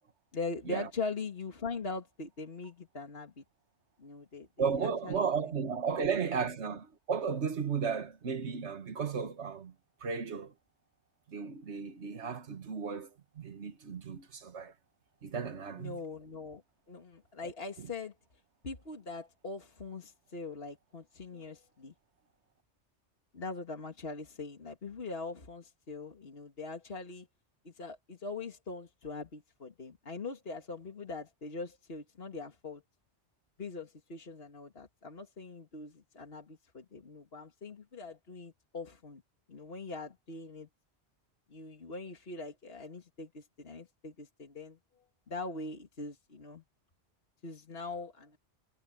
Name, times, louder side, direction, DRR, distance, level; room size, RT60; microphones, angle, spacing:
voice 1, 0.3-3.4 4.0-5.6 6.4-6.5 15.8-16.6 16.9-18.1 18.6-21.9 23.3-27.3 27.6-32.8 33.6-39.2 39.5-40.7 41.5-44.8 45.3-46.6 47.4-48.4, left 3 dB, 60° left, 2.2 m, -42 dB
voice 2, 4.6-9.7 10.0-10.5 11.3-13.1 13.4-14.7 15.2-16.0, right 6 dB, 75° right, 1.8 m, -34 dB
omnidirectional pair, 1.2 m